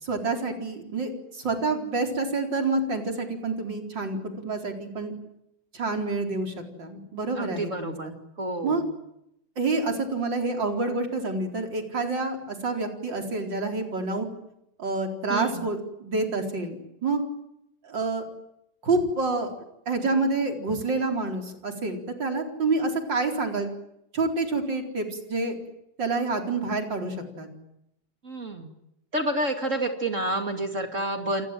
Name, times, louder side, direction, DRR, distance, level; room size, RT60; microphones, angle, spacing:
voice 1, 0.0-5.1 5.7-8.1 8.6-8.8 9.6-14.3 14.8-16.8 17.0-17.2 17.8-18.2 18.8-19.5 19.9-23.7 24.1-25.6 26.0-27.5, right 3 dB, 75° right, 4 dB, 4.9 m, -28 dB
voice 2, 7.3-8.1 8.4-8.9 15.3-15.6 28.2-28.7 29.1-31.5, right 1 dB, 40° right, 6 dB, 2.9 m, -29 dB
30.0 x 25.0 x 7.7 m, 0.81 s
omnidirectional pair, 2.0 m